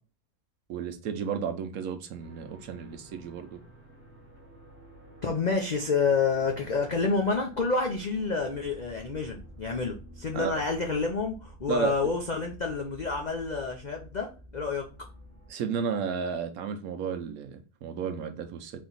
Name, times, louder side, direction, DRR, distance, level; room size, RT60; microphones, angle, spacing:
voice 1, 0.7-3.6 10.3-10.5 11.7-12.1 15.5-18.8, right 6 dB, 70° right, 1.1 m, -33 dB
sound 1, 2.2-15.5, right 1 dB, 45° left, 1.7 m, -50 dB
voice 2, 5.2-14.3 14.5-14.9, left 4 dB, 70° left, 0.4 m, -28 dB
4.2 x 2.9 x 3.9 m
omnidirectional pair, 1.7 m